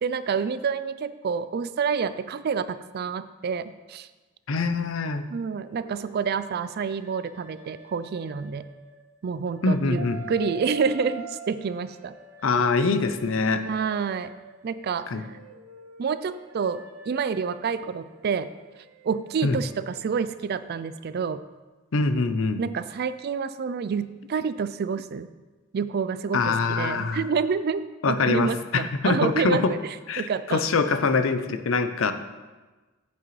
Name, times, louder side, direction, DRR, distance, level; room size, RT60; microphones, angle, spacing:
voice 1, 0.0-4.1 5.3-8.7 9.2-12.1 13.7-14.3 14.6-15.3 16.0-18.5 19.0-21.4 22.6-25.3 25.7-29.8 30.2-30.6, right 6 dB, 50° right, 14 dB, 0.3 m, -28 dB
voice 2, 4.5-5.2 9.6-10.2 12.4-13.6 15.1-15.2 19.4-19.6 21.9-22.6 26.3-27.2 28.0-29.7 30.1-32.1, left 4 dB, 70° left, 9 dB, 0.6 m, -24 dB
sound 1, 5.5-9.1 9.5-14.7 15.2-20.7, right 4 dB, 90° right, 0.8 m, -45 dB
8.9 x 8.4 x 3.2 m, 1.2 s
head